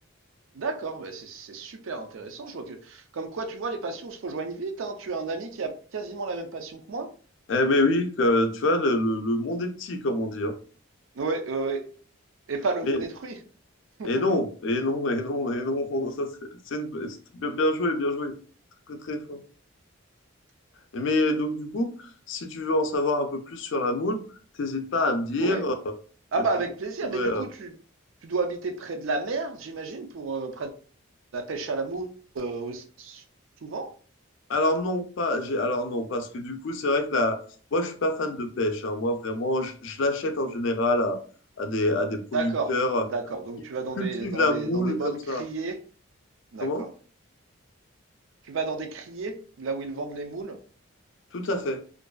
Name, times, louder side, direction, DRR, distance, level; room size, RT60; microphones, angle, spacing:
voice 1, 0.5-7.1 11.2-11.8 12.5-13.4 14.0-14.3 25.4-25.6 26.3-27.7 28.2-30.7 31.3-33.2 33.6-33.9 42.3-42.7 43.0-45.8 46.5-46.9 48.4-50.6, right 3 dB, 65° right, 0.4 m, -32 dB
voice 2, 7.5-10.5 12.9-13.0 14.0-16.3 16.7-18.4 18.9-19.4 20.9-24.2 24.6-25.7 27.0-27.4 34.5-37.4 37.7-41.2 41.6-43.0 44.0-45.4 46.6-46.8 51.3-51.8, left 1 dB, 60° left, 0.4 m, -26 dB
2.5 x 2.2 x 2.3 m
head